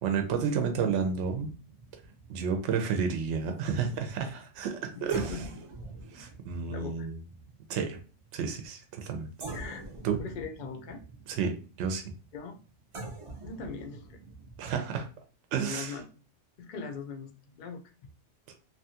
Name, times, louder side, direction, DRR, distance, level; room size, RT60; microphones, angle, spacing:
voice 1, 0.0-1.5 2.3-5.4 6.1-7.2 7.7-8.0 8.3-9.3 10.0-10.2 11.3-12.0 14.6-15.1 15.5-16.0, right 6 dB, 75° right, 5 dB, 0.9 m, -31 dB
sound 1, 0.9-4.2 4.6-4.7 5.1-9.1 9.4-15.1, right 2 dB, 45° right, 0.4 m, -46 dB
voice 2, 5.0-5.6 6.7-7.1 9.5-9.8 10.2-11.0 12.3-12.6 13.4-14.2 15.6-16.0 16.6-17.8, left 5 dB, 60° left, 4 dB, 0.5 m, -40 dB
2.9 x 2.3 x 2.7 m, 0.36 s
omnidirectional pair, 1.3 m